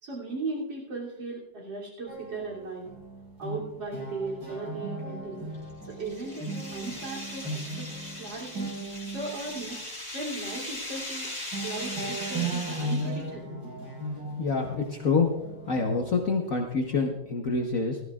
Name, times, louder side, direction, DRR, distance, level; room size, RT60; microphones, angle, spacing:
voice 1, 0.0-2.9 3.4-5.4 5.8-7.9 8.1-8.7 9.0-9.8 10.1-11.3 11.6-13.6, right 3 dB, 75° right, -5 dB, 3.8 m, -37 dB
sound 1, 2.1-9.8 10.3-10.5 10.8-11.2 11.5-17.1, right 2 dB, 90° right, 6.4 m, -37 dB
sound 2, 5.5-13.3, left 1 dB, 35° left, 4.3 m, -39 dB
voice 2, 14.4-15.3 15.7-18.0, left 4 dB, 50° left, 1 dB, 1.4 m, -26 dB
19.5 x 13.5 x 2.4 m, 0.88 s
omnidirectional pair, 2.0 m